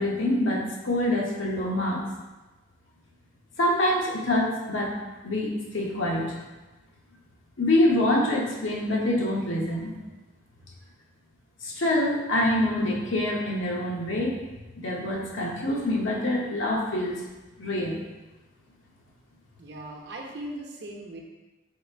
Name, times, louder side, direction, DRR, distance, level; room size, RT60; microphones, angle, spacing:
voice 1, 0.0-2.0 3.6-4.9 5.2-6.4 7.6-9.9 11.6-14.4 14.8-17.2 17.6-18.0, left 1 dB, 85° left, -2 dB, 0.9 m, -25 dB
voice 2, 19.6-21.2, right 1 dB, 60° right, 0 dB, 0.7 m, -39 dB
4.9 x 2.4 x 4.4 m, 1.1 s
head